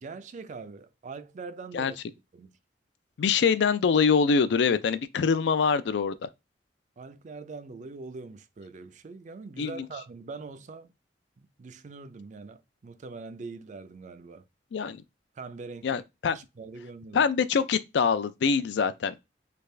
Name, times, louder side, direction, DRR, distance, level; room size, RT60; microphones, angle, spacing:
voice 1, 0.0-2.0 2.3-2.6 7.0-10.9 11.4-14.4 15.3-17.3, right 4 dB, 45° right, 0.4 m, -43 dB
voice 2, 3.2-6.3 9.6-9.7 14.7-15.0 15.8-16.4 17.1-19.2, left 5 dB, 70° left, 0.4 m, -24 dB
3.5 x 2.4 x 3.2 m
head